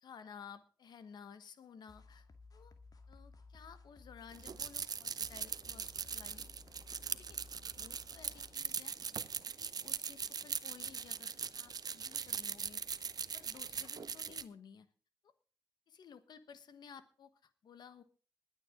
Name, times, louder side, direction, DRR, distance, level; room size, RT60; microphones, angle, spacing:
voice 1, 0.0-2.3 2.5-2.7 3.1-6.5 7.1-7.4 7.8-9.0 9.6-12.8 13.3-14.9 15.2-15.3 15.9-18.0, left 7 dB, 85° left, 12 dB, 1.3 m, -55 dB
sound 1, 1.9-8.5, left 3 dB, 60° left, 2.0 m, -58 dB
sound 2, 4.3-14.4, right 6 dB, 65° right, 0.7 m, -40 dB
21.0 x 9.0 x 3.7 m, 0.37 s
cardioid pair, 50°, 7 cm